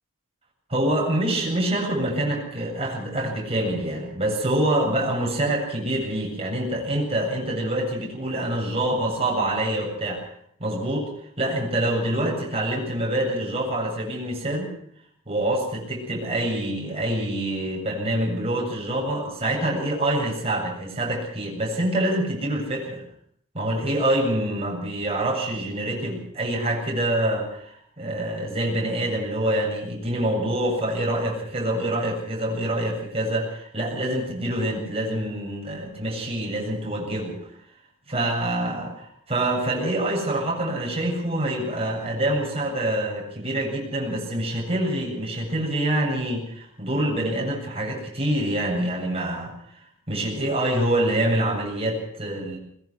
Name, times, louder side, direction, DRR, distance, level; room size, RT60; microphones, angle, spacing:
voice 1, 0.7-10.2 10.6-11.1 11.4-14.7 15.3-23.0 23.5-37.4 38.1-52.6, right 1 dB, 30° right, -1 dB, 7.9 m, -26 dB
21.5 x 21.5 x 6.0 m, 0.65 s
head